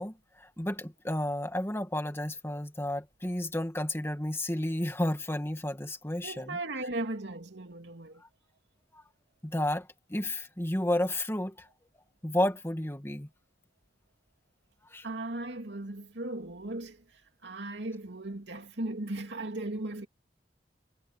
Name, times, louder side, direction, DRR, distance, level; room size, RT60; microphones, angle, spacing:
voice 1, 0.0-6.6 8.2-8.3 8.9-9.0 9.4-11.7 12.2-13.3 14.9-15.1, left 1 dB, 15° left, 2.0 m, -32 dB
voice 2, 6.2-8.2 15.0-20.1, right 2 dB, 90° right, 2.6 m, -37 dB
head